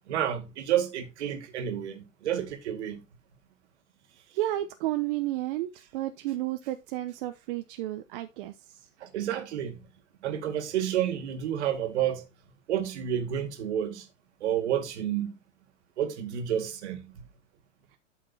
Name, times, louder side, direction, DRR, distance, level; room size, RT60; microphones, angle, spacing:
voice 1, 0.1-3.0 9.0-9.9 10.2-12.3 12.7-14.1 14.4-15.3 16.0-17.3, right 10 dB, 65° right, 2.2 m, -30 dB
voice 2, 4.3-8.8, right 15 dB, 45° right, 0.9 m, -32 dB
11.5 x 6.1 x 2.9 m
hypercardioid pair, 120°, 37 cm